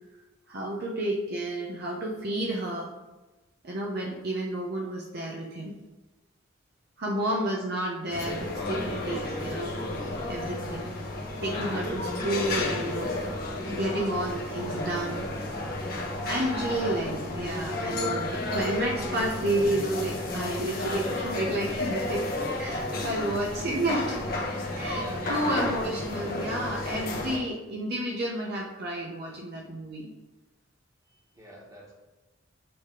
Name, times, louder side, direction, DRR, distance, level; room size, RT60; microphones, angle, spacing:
voice 1, 0.5-2.9 3.6-5.7 7.0-9.8 10.0-10.9 11.4-13.1 13.7-15.3 16.3-22.2 22.6-24.3 24.8-30.1, right 1 dB, 50° right, -2 dB, 0.8 m, -31 dB
voice 2, 7.2-7.6 22.9-23.4 24.9-26.0 27.5-27.6 31.1-31.9, right 1 dB, 20° right, -4 dB, 1.6 m, -45 dB
sound 1, 8.1-27.4, left 2 dB, 50° left, 1.3 m, -32 dB
7.0 x 3.5 x 4.9 m, 1.1 s
head